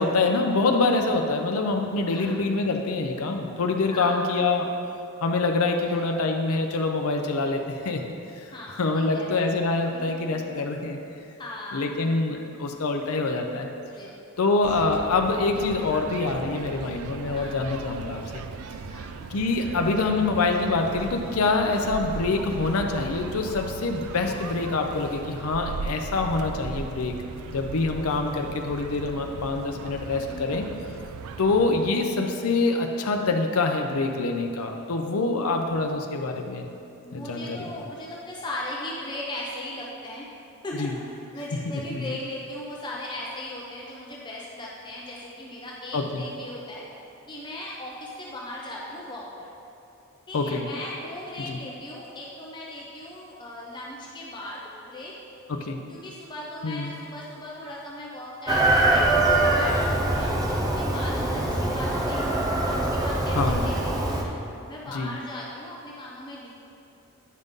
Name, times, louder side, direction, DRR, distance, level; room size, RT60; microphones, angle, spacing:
voice 1, 0.0-4.7 5.2-8.0 8.4-11.0 11.7-13.7 14.4-18.4 19.3-27.2 27.5-30.7 31.4-36.7 37.1-37.6 40.7-40.9 41.7-42.0 45.9-46.2 50.3-50.7 51.5-51.6 55.5-55.8 56.6-56.9 63.3-63.7 64.9-65.1, left 3 dB, 80° left, 3 dB, 0.6 m, -25 dB
voice 2, 3.9-4.5 5.8-6.0 8.5-9.3 9.9-10.6 11.4-12.1 13.9-14.2 17.3-17.8 18.9-19.2 21.5-21.7 30.3-30.7 37.0-40.3 40.6-46.8 47.3-49.5 50.3-55.1 55.9-64.3 64.7-66.5, left 1 dB, 20° left, -4 dB, 0.7 m, -38 dB
sound 1, 14.6-31.9, right 4 dB, 80° right, 0.4 m, -38 dB
Chicken rooster, 58.5-64.2, right 2 dB, 15° right, 0.5 m, -23 dB
9.3 x 5.3 x 3.6 m, 2.6 s
head